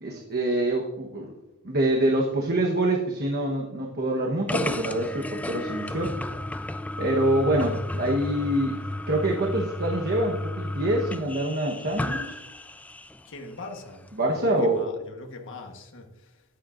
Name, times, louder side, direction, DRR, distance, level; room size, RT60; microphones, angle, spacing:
voice 1, 0.0-1.3 1.6-6.1 7.0-8.8 9.1-12.4 14.2-14.9, right 1 dB, 45° right, 1.2 m, -25 dB
sound 1, 4.5-13.2, left 1 dB, 5° left, 0.3 m, -33 dB
voice 2, 13.2-16.4, left 2 dB, 60° left, 1.3 m, -42 dB
15.0 x 10.5 x 2.6 m
head